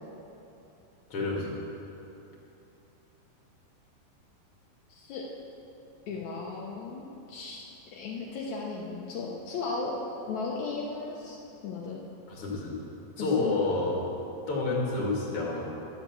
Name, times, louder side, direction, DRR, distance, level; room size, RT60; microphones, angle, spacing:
voice 1, 1.1-1.5 12.3-12.7 13.2-14.0 14.5-15.6, left 3 dB, 45° left, -3 dB, 2.5 m, -29 dB
voice 2, 4.9-5.2 6.1-7.6 8.0-10.0 10.3-11.4 11.6-12.0 13.2-13.5, left 4 dB, 70° left, -4 dB, 1.7 m, -36 dB
11.5 x 7.6 x 7.0 m, 2.9 s
omnidirectional pair, 4.5 m